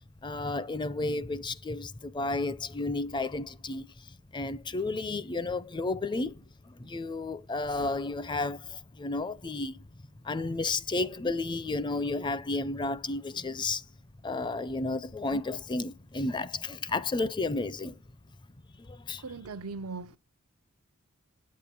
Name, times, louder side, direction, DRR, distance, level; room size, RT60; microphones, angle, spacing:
voice 1, 0.2-9.8 10.2-13.9 14.2-18.0 18.8-19.2, left 3 dB, 20° left, 0.4 m, -32 dB
voice 2, 19.2-20.2, right 4 dB, 85° right, 0.7 m, -39 dB
8.5 x 8.4 x 5.9 m
head